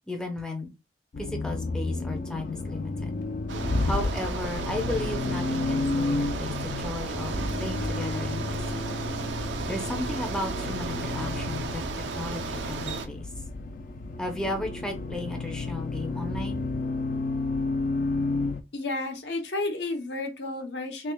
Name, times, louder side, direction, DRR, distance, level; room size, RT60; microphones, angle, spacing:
voice 1, 0.1-0.7 1.2-3.1 3.8-8.9 9.6-11.8 12.1-13.3 14.2-16.7, left 1 dB, 5° left, 0.6 m, -34 dB
Accelerating revving vroom, 1.1-18.6, left 3 dB, 50° left, 0.4 m, -31 dB
Bicycle, 3.5-13.1, right 3 dB, 75° right, 0.5 m, -34 dB
voice 2, 18.7-21.1, left 2 dB, 65° left, 0.8 m, -31 dB
3.3 x 3.3 x 2.2 m
head